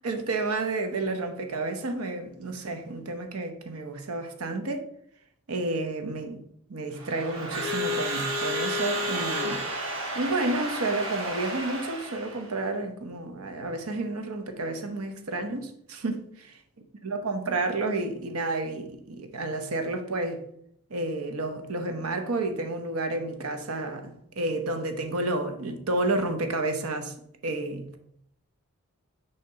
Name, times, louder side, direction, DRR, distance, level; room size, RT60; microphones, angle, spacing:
voice 1, 0.0-4.9 5.5-6.4 6.7-9.6 10.1-16.6 17.0-20.4 20.9-27.1 27.4-27.9, right 2 dB, 85° right, 0.9 m, -30 dB
Crowd / Alarm, 6.9-12.5, equal, 65° right, 1.2 m, -31 dB
6.5 x 2.9 x 5.6 m
head